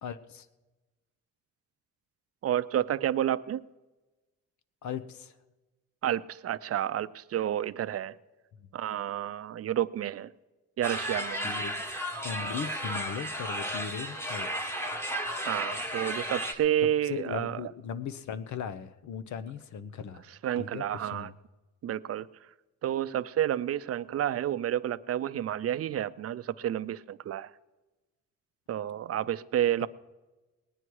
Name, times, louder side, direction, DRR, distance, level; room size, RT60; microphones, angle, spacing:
voice 1, 0.0-0.5 4.8-5.4 8.6-8.7 11.4-11.7 12.2-14.7 16.8-20.2 20.6-21.3 29.8-29.9, left 7 dB, 70° left, 0.9 m, -38 dB
voice 2, 2.4-3.6 6.0-8.2 8.7-10.3 10.8-11.5 15.4-17.6 20.4-21.3 21.8-22.3 22.8-27.5 28.7-29.9, right 11 dB, 55° right, 0.5 m, -30 dB
sound 1, 10.8-16.5, equal, 10° left, 1.3 m, -34 dB
19.5 x 9.9 x 4.7 m
cardioid pair, 110°, 30 cm